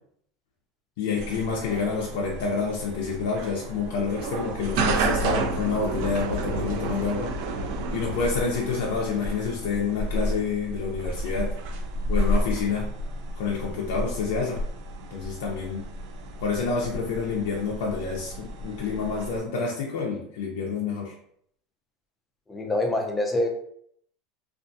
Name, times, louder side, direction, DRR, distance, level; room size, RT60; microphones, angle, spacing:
voice 1, 1.0-7.3 7.9-11.5 12.1-12.9 13.3-14.6 15.1-15.8 16.4-21.1, left 5 dB, 80° left, -2 dB, 0.4 m, -28 dB
sound 1, 1.2-19.4, right 1 dB, 70° right, 0.3 m, -31 dB
voice 2, 22.5-23.5, left 1 dB, 15° left, 3 dB, 0.4 m, -25 dB
2.4 x 2.2 x 2.6 m, 0.67 s
supercardioid pair, 130°, 0 cm